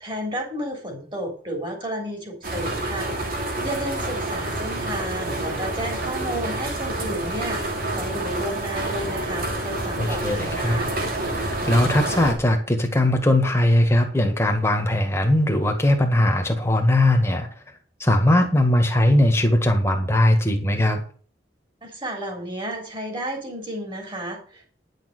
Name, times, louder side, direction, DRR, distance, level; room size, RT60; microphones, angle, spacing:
voice 1, 0.0-3.1 3.6-10.9 21.8-24.7, right 1 dB, 30° right, 1 dB, 3.5 m, -32 dB
sound 1, 2.4-12.3, right 1 dB, 55° right, 3.1 m, -28 dB
voice 2, 10.0-10.8 11.3-17.5 18.0-21.0, left 1 dB, 15° left, 4 dB, 1.8 m, -20 dB
10.5 x 6.6 x 6.7 m, 0.42 s
head